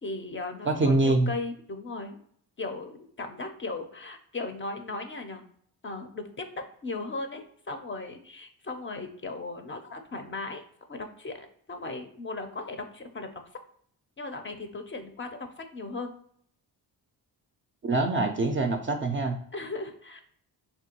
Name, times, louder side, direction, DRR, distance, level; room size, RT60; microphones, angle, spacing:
voice 1, 0.0-2.2 2.6-5.4 5.8-10.6 10.9-13.3 14.2-15.3 15.6-16.1 19.5-20.2, left 3 dB, 30° left, 6 dB, 0.4 m, -37 dB
voice 2, 0.7-1.3 17.8-19.4, right 2 dB, 30° right, 5 dB, 0.4 m, -24 dB
3.4 x 2.2 x 2.8 m, 0.63 s
supercardioid pair, 50°, 43 cm